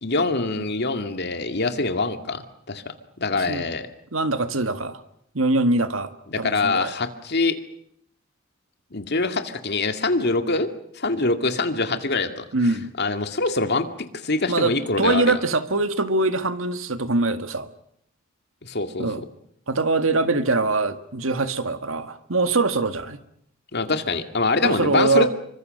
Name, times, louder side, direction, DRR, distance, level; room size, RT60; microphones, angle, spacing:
voice 1, 0.0-2.8 3.2-3.9 6.3-7.6 8.9-10.7 11.0-12.4 13.0-13.9 14.2-15.3 18.6-19.1 23.7-25.3, left 3 dB, 55° left, 7 dB, 2.3 m, -24 dB
voice 2, 3.3-3.7 4.1-5.0 5.3-6.1 6.4-6.9 12.5-12.9 14.5-17.7 19.0-19.2 19.7-23.2 24.6-25.3, right 3 dB, 85° right, 10 dB, 1.9 m, -23 dB
27.5 x 24.5 x 6.6 m, 0.71 s
head